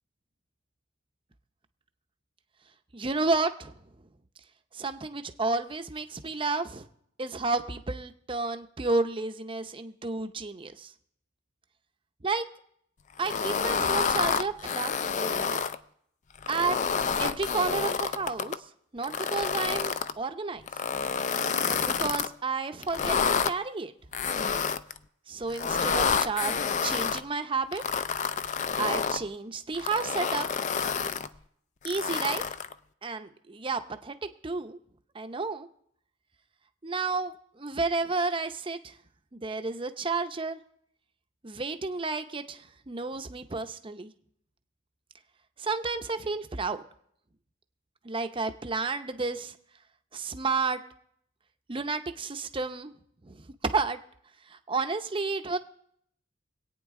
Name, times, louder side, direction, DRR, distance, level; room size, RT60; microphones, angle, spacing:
voice 1, 2.9-3.7 4.7-6.9 7.2-10.9 12.2-12.4 13.2-15.6 16.5-16.8 17.2-18.6 18.9-20.6 21.7-23.2 23.4-23.9 25.3-27.8 28.8-30.5 31.8-32.4 33.0-34.8 35.1-35.7 36.8-39.0 39.3-40.6 41.4-44.1 45.6-46.8 48.0-49.6 50.1-50.8 51.7-52.9 53.2-54.0 54.5-55.6, right 3 dB, 25° right, 8 dB, 0.6 m, -31 dB
sound 1, 13.2-15.8 16.3-18.6 19.0-20.1 20.7-22.3 22.8-23.5 24.1-25.0 25.5-27.2 27.7-29.2 29.7-31.3 31.8-32.7, left 6 dB, 40° left, 0.4 m, -29 dB
25.5 x 9.0 x 3.7 m, 0.69 s
head